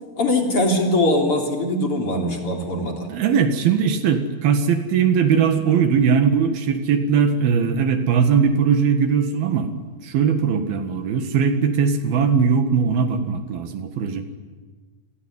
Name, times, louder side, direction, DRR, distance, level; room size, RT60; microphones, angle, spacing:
voice 1, 0.2-3.1, left 1 dB, 35° left, 1 dB, 4.0 m, -21 dB
voice 2, 3.1-9.7 10.0-14.2, right 6 dB, 70° right, 7 dB, 3.5 m, -20 dB
29.5 x 21.0 x 9.7 m, 1.4 s
omnidirectional pair, 4.6 m